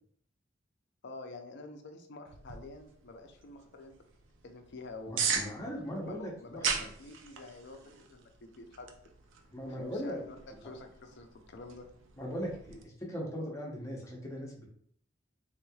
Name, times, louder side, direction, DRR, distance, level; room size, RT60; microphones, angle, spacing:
voice 1, 1.0-3.9 4.4-5.4 6.1-7.8 8.1-8.9 9.7-10.4 10.6-11.9, left 3 dB, 60° left, 5 dB, 0.5 m, -48 dB
sound 1, 2.3-12.8, right 6 dB, 65° right, 0.4 m, -40 dB
voice 2, 5.1-6.9 9.5-10.2 12.2-14.7, equal, 15° left, -3 dB, 0.8 m, -39 dB
3.5 x 3.1 x 2.3 m, 0.63 s
head